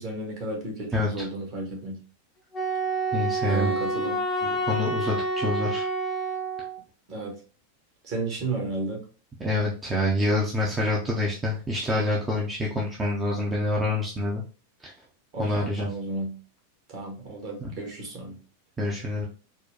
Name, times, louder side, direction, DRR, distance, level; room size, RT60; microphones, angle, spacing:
voice 1, 0.0-2.0 3.5-4.2 7.1-7.3 8.0-9.0 15.3-16.4 16.9-18.4, right 2 dB, 40° right, 0 dB, 1.4 m, -33 dB
voice 2, 0.9-1.3 3.1-3.7 4.4-5.8 9.4-14.4 14.8-14.9 15.4-15.9 17.6-17.7 18.8-19.3, left 1 dB, 15° right, -3 dB, 0.7 m, -27 dB
Wind instrument woodwind instrument, 2.5-6.8, right 2 dB, 20° left, 0.8 m, -28 dB
4.4 x 2.2 x 2.8 m, 0.35 s
figure-of-eight pair, 90°, 0 cm